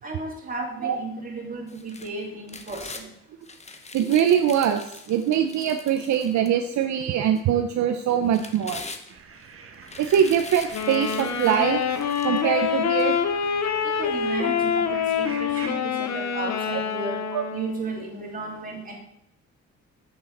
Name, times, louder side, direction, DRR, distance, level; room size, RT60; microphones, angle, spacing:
voice 1, 0.0-3.0 14.0-17.2 17.5-19.0, right 3 dB, 30° right, -2 dB, 2.9 m, -34 dB
sound 1, 1.7-3.1 3.4-6.8 7.4-7.5 8.1-9.4 9.8-12.5 13.0-13.1, left 3 dB, 20° left, 0.9 m, -42 dB
voice 2, 3.9-8.8 10.0-11.8 12.2-13.2 16.7-16.8 17.3-17.4, right 9 dB, 70° right, 6 dB, 0.7 m, -23 dB
sound 2, 9.1-15.7, right 5 dB, 45° right, 1.2 m, -44 dB
Wind instrument woodwind instrument, 10.7-17.9, left 7 dB, 65° left, 0.9 m, -26 dB
7.7 x 6.7 x 4.3 m, 0.72 s
cardioid pair, 90°, 30 cm